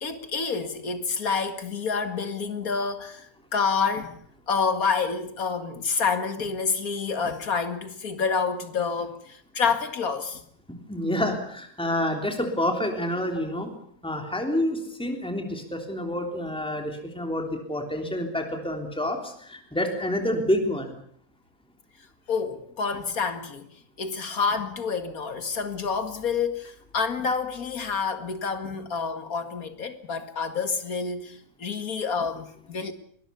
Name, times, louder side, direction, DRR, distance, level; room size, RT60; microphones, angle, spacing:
voice 1, 0.0-4.2 4.5-10.4 22.3-23.7 24.0-32.9, left 5 dB, 90° left, 2.4 m, -28 dB
voice 2, 10.7-13.7 14.0-20.9, left 1 dB, 5° left, 3.3 m, -28 dB
22.5 x 20.5 x 7.0 m
omnidirectional pair, 1.5 m